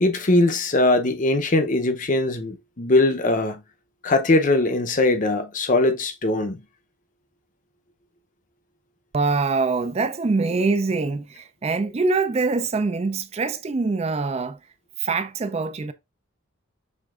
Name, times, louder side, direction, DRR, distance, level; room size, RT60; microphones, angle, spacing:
voice 1, 0.0-3.6 4.0-6.6, left 2 dB, 35° left, 0.6 m, -21 dB
voice 2, 9.1-14.6 15.0-15.9, right 4 dB, 30° right, 0.3 m, -24 dB
6.4 x 3.4 x 2.4 m
head